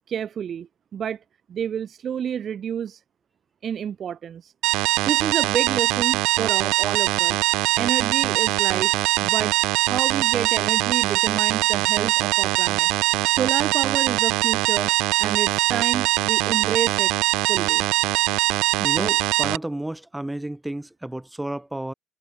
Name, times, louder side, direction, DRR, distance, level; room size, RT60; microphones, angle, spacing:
voice 1, 0.1-1.2 1.5-3.0 3.6-4.5 4.8-7.4 7.8-8.9 9.2-9.6 9.8-17.1 17.5-17.8, right 8 dB, 35° right, 1.1 m, -29 dB
sound 1, 4.6-19.6, right 22 dB, 75° right, 1.6 m, -22 dB
voice 2, 18.8-21.9, right 1 dB, 5° right, 3.3 m, -31 dB
cardioid pair, 160°, 0 cm